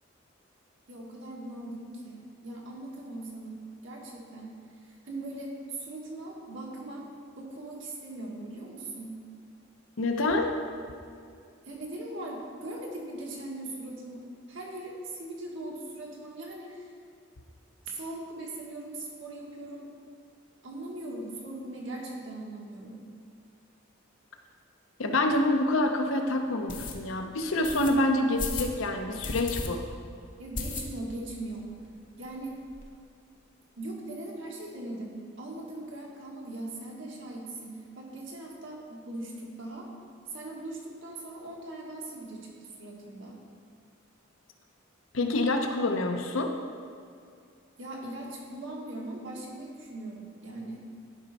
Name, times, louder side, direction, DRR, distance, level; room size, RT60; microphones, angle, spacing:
voice 1, 0.9-4.5 4.8-7.0 7.4-9.1 11.6-16.9 17.8-19.9 20.6-23.0 30.4-31.7 32.2-32.6 33.7-39.9 40.3-42.5 42.8-43.4 47.8-50.8, right 2 dB, 70° right, -2 dB, 1.7 m, -40 dB
voice 2, 10.0-10.5 25.0-29.9 45.1-46.5, left 2 dB, 80° left, 4 dB, 0.8 m, -27 dB
sound 1, 25.3-25.4 25.9-26.0 26.7-27.0 27.6-27.9 28.4-28.7 29.2-29.7 30.0-30.1 30.5-31.2 31.5-31.6 31.9-32.0 32.2-32.9, left 3 dB, 40° left, 0.9 m, -35 dB
11.0 x 5.3 x 4.2 m, 2.3 s
head